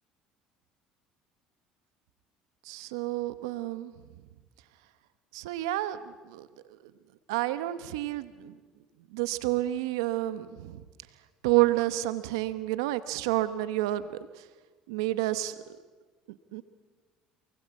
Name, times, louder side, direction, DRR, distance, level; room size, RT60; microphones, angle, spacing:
voice 1, 2.6-3.9 5.3-6.5 7.3-8.5 9.1-10.8 11.4-14.1 14.9-15.5 16.5-16.6, right 16 dB, 90° right, 13 dB, 1.0 m, -29 dB
28.0 x 20.0 x 8.5 m, 1.3 s
supercardioid pair, 85°, 3 cm